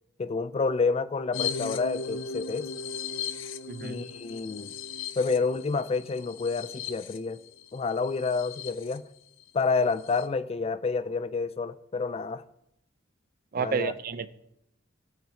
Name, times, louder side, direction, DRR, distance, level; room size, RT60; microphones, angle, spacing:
voice 1, 0.2-2.7 3.8-4.7 5.2-7.4 7.7-9.0 9.5-12.4 13.6-13.9, left 4 dB, 30° left, 0.4 m, -29 dB
sound 1, 1.3-9.0 9.4-9.5 9.8-10.3, left 6 dB, 85° left, 0.5 m, -37 dB
voice 2, 3.7-4.0 13.5-14.3, right 6 dB, 50° right, 0.5 m, -30 dB
17.0 x 5.9 x 3.7 m
head